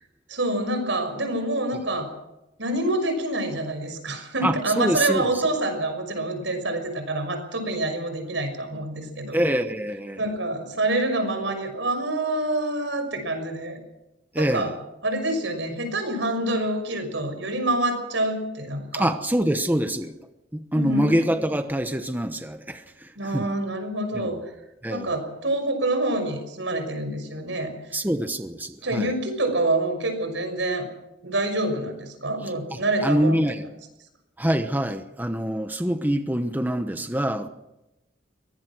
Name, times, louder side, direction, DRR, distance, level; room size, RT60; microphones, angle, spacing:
voice 1, 0.3-2.1 2.6-9.4 10.2-13.8 14.3-14.7 15.0-19.1 20.7-21.1 23.2-24.4 24.9-28.0 28.8-30.9 31.2-33.4, right 2 dB, 80° right, 7 dB, 6.1 m, -26 dB
voice 2, 4.4-5.4 9.3-10.2 14.3-14.7 18.9-20.1 20.5-23.5 24.1-24.3 24.8-25.2 27.9-29.1 32.4-33.6 34.4-37.5, right 1 dB, 10° right, 8 dB, 1.0 m, -25 dB
23.0 x 19.5 x 6.2 m, 0.92 s
head